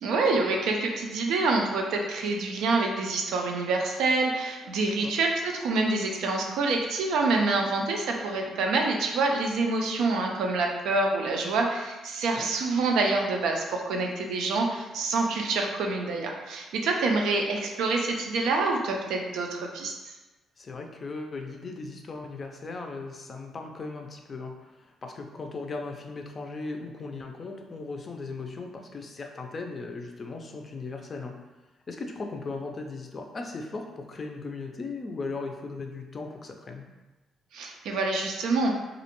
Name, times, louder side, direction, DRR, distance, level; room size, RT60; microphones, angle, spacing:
voice 1, 0.0-20.1 37.5-38.8, right 3 dB, 85° right, 1 dB, 0.4 m, -26 dB
voice 2, 20.6-31.4 31.9-36.9, left 3 dB, 40° left, 3 dB, 0.4 m, -37 dB
2.4 x 2.1 x 2.9 m, 1.1 s
cardioid pair, 90°, 0 cm